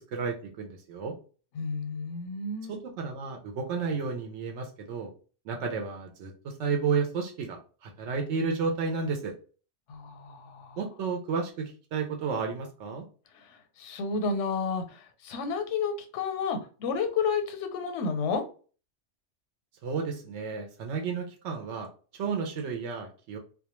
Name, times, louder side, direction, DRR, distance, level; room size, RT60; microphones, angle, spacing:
voice 1, 0.1-1.1 2.7-5.1 5.5-9.3 10.8-13.0 19.8-21.9 22.2-23.4, right 5 dB, 80° right, 2 dB, 0.9 m, -32 dB
voice 2, 1.5-2.8 9.9-10.8 13.3-13.5 13.8-18.4, left 5 dB, 90° left, 7 dB, 0.9 m, -31 dB
2.2 x 2.2 x 2.9 m, 0.37 s
omnidirectional pair, 1.2 m